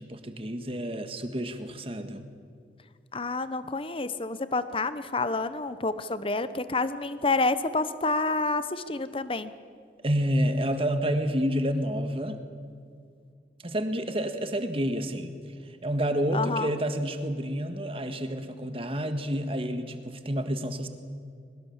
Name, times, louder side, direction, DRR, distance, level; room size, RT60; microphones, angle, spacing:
voice 1, 0.0-2.3 10.0-12.4 13.6-15.3 15.8-20.9, equal, 30° right, 7 dB, 1.6 m, -29 dB
voice 2, 3.1-9.5 16.3-16.7, left 3 dB, 30° left, 13 dB, 0.9 m, -28 dB
22.5 x 20.0 x 7.2 m, 2.3 s
head